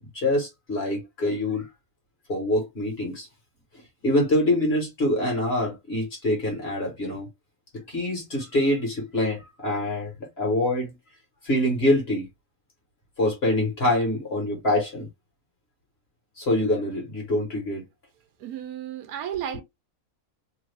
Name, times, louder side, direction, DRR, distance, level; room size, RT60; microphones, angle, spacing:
voice 1, 0.0-1.7 2.3-3.3 4.0-7.3 7.9-10.9 11.4-12.3 13.2-15.1 16.4-17.8, left 1 dB, 45° left, 1.4 m, -25 dB
voice 2, 18.4-19.6, right 10 dB, 90° right, 1.1 m, -33 dB
3.1 x 2.5 x 3.3 m
omnidirectional pair, 1.5 m